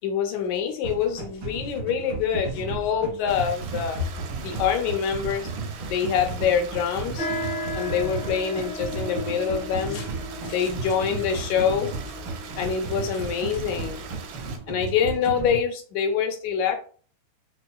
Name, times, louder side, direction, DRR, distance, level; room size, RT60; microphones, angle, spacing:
voice 1, 0.0-4.1 4.4-5.5 5.9-7.3 7.8-10.1 10.4-11.9 12.6-14.1 14.7-16.8, left 7 dB, 80° left, 4 dB, 1.9 m, -25 dB
sound 1, 0.8-15.6, right 4 dB, 55° right, 1.6 m, -35 dB
Stream, 3.3-14.6, right 7 dB, 90° right, 2.1 m, -41 dB
sound 2, 7.2-14.9, left 2 dB, 55° left, 0.7 m, -36 dB
5.4 x 2.4 x 2.2 m, 0.41 s
omnidirectional pair, 3.4 m